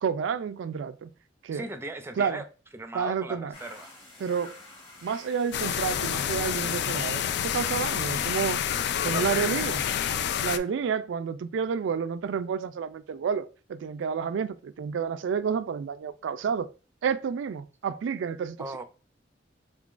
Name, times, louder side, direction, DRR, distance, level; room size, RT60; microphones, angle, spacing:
voice 1, 0.0-1.1 1.4-1.6 2.2-2.4 2.9-3.5 4.2-4.6 5.0-8.6 9.0-9.9 10.4-16.7 17.0-18.6, right 6 dB, 90° right, 0.3 m, -30 dB
voice 2, 1.5-2.4 2.7-3.9 18.6-18.8, right 2 dB, 15° right, 0.4 m, -37 dB
sound 1, 3.5-8.9, left 2 dB, 25° left, 1.2 m, -49 dB
sound 2, 5.5-10.6, left 9 dB, 60° left, 0.3 m, -28 dB
3.8 x 3.7 x 2.4 m
head